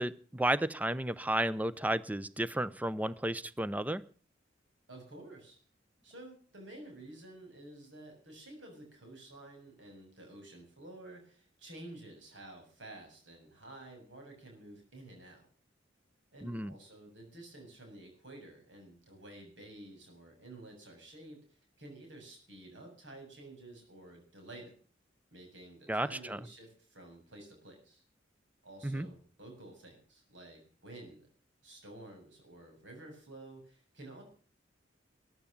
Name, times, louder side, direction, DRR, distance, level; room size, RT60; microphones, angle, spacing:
voice 1, 0.0-4.0 16.4-16.7 25.9-26.4 28.8-29.1, right 1 dB, 10° right, 16 dB, 0.6 m, -33 dB
voice 2, 4.9-5.6 6.0-15.5 16.3-21.4 21.8-24.8 25.3-28.0 28.6-31.3 31.6-34.2, right 1 dB, 75° right, 3 dB, 7.1 m, -51 dB
14.0 x 11.0 x 7.3 m, 0.41 s
head